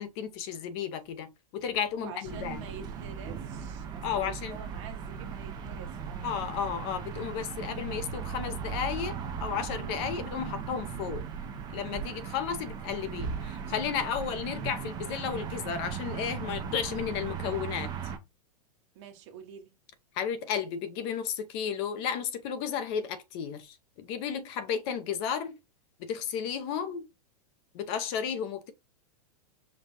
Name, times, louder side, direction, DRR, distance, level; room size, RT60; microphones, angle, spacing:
voice 1, 0.0-2.6 4.0-4.6 6.2-11.3 11.7-17.9 20.1-25.5 26.0-27.1 27.7-28.7, left 8 dB, 40° left, 0.6 m, -33 dB
voice 2, 1.9-6.3 18.9-19.7, right 8 dB, 50° right, 1.3 m, -46 dB
sound 1, 2.2-18.2, right 6 dB, 20° right, 0.6 m, -38 dB
5.2 x 2.3 x 4.0 m
supercardioid pair, 150°, 20 cm